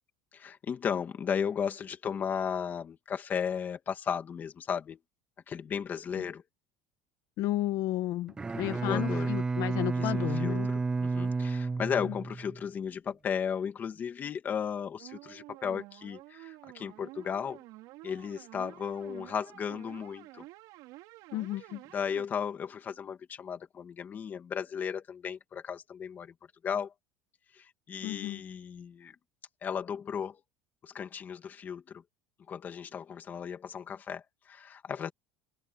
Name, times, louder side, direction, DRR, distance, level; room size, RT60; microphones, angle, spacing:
voice 1, 0.3-5.0 5.5-6.4 8.8-9.3 9.9-17.6 18.0-20.5 21.9-26.3 26.6-26.9 27.5-29.2 29.6-30.4 30.8-32.0 32.5-35.1, left 7 dB, 20° left, 2.3 m, -35 dB
voice 2, 7.4-10.7 12.0-12.1 21.3-21.8 28.0-28.4, left 15 dB, 45° left, 1.7 m, -33 dB
Bowed string instrument, 8.3-12.6, right 4 dB, 10° right, 0.4 m, -31 dB
sound 1, 15.0-22.2, right 19 dB, 50° right, 4.1 m, -50 dB
cardioid pair, 175°, 8 cm